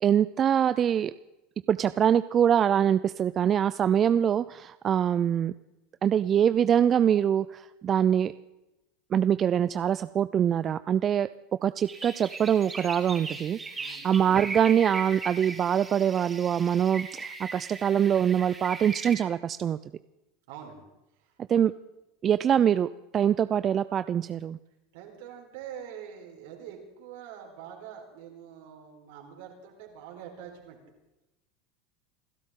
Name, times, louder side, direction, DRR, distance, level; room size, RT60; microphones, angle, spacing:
voice 1, 0.0-1.1 1.7-5.5 6.0-8.3 9.1-11.3 11.6-19.8 21.5-21.7 22.2-22.9 23.1-24.6, right 9 dB, 35° right, 14 dB, 0.4 m, -24 dB
sound 1, 11.8-19.1, right 3 dB, 20° right, 3.1 m, -39 dB
voice 2, 13.8-14.1 20.5-20.8 21.2-21.3 24.9-30.8, right 8 dB, 75° right, 1 dB, 4.3 m, -45 dB
27.5 x 12.5 x 3.8 m, 0.97 s
hypercardioid pair, 105°, 0 cm